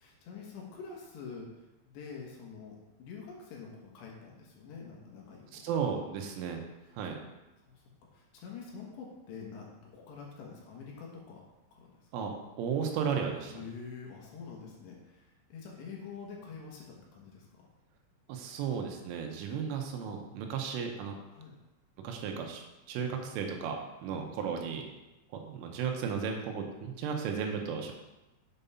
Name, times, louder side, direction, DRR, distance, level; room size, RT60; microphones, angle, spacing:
voice 1, 0.0-5.7 6.8-6.9 7.6-7.8 8.1-12.1 13.5-17.7 21.3-21.5 24.1-24.3, left 5 dB, 70° left, -2 dB, 3.3 m, -46 dB
voice 2, 5.5-6.6 7.0-7.2 12.1-13.6 18.3-21.2 22.0-24.8 25.3-27.9, right 6 dB, 85° right, 2 dB, 3.5 m, -34 dB
8.2 x 5.4 x 5.6 m, 1.0 s
omnidirectional pair, 5.5 m